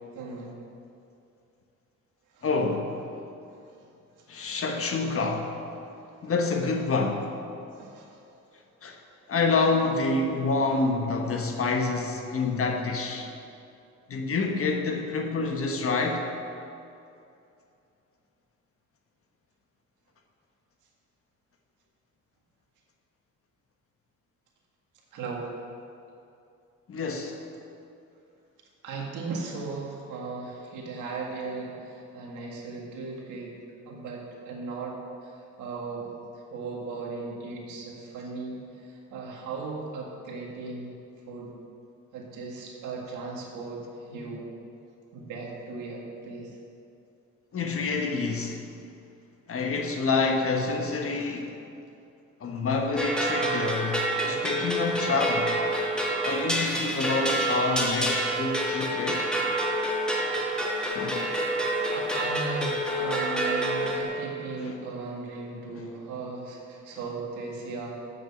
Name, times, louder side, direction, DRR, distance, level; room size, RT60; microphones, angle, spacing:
voice 1, 0.1-0.6 2.3-2.5 3.5-3.7 7.7-8.3 10.7-10.8 25.1-25.5 28.8-33.6 33.9-41.0 41.3-41.5 42.1-44.5 45.1-46.6 61.9-68.0, right 3 dB, 85° right, -2 dB, 1.8 m, -37 dB
voice 2, 2.4-3.1 4.3-5.6 6.2-7.3 8.8-9.0 9.3-13.3 14.1-16.3 26.9-27.3 47.5-48.6 49.5-51.6 52.4-55.6 56.2-59.3 60.9-61.3 64.6-64.7, left 3 dB, 45° left, 2 dB, 1.3 m, -27 dB
sound 1, 53.0-64.0, right 1 dB, 5° left, 1.6 m, -28 dB
7.2 x 6.5 x 7.4 m, 2.6 s
cardioid pair, 90°, 30 cm